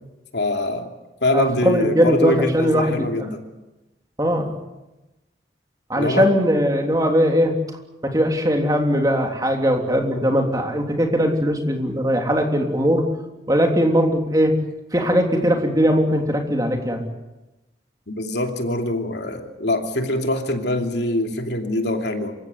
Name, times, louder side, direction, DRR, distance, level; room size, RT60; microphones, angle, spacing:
voice 1, 0.3-0.9 1.2-3.4 6.0-6.3 18.1-22.3, left 1 dB, 75° left, 4 dB, 2.9 m, -24 dB
voice 2, 1.3-3.1 4.2-4.5 5.9-7.6 8.0-13.1 13.5-14.6 14.9-17.1, equal, 20° right, 3 dB, 3.2 m, -20 dB
27.0 x 16.5 x 9.7 m, 1.0 s
head